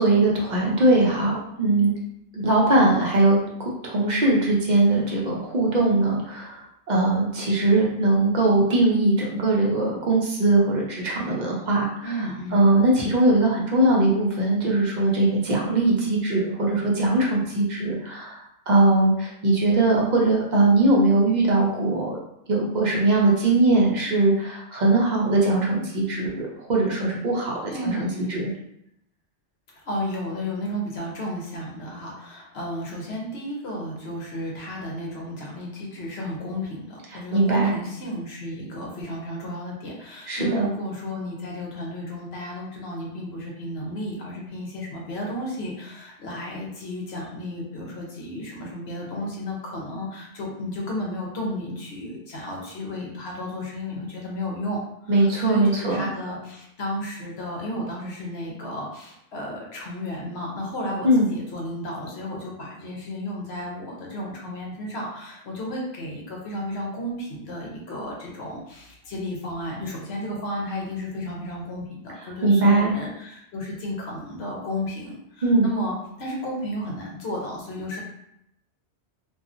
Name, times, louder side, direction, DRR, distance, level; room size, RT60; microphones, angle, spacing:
voice 1, 0.0-1.9 2.3-3.4 3.8-6.6 6.9-22.2 22.5-28.5 37.1-37.8 40.3-40.7 55.1-56.0 61.0-61.2 72.4-72.9 75.4-75.7, right 2 dB, 50° right, -3 dB, 0.6 m, -21 dB
voice 2, 12.0-12.7 27.7-28.4 29.8-54.8 55.1-78.0, equal, 70° left, -2 dB, 1.0 m, -33 dB
2.7 x 2.3 x 2.4 m, 0.77 s
omnidirectional pair, 1.2 m